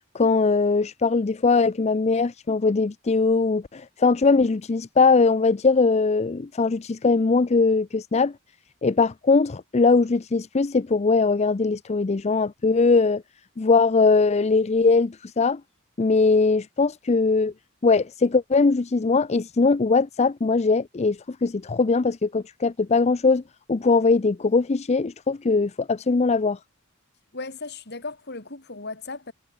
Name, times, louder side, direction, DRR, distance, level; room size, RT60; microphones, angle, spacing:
voice 1, 0.1-8.3 8.8-13.2 13.6-15.6 16.0-17.5 17.8-23.4 23.7-26.6, left 4 dB, 30° left, 0.5 m, -21 dB
voice 2, 27.3-29.3, left 3 dB, 50° left, 4.1 m, -36 dB
head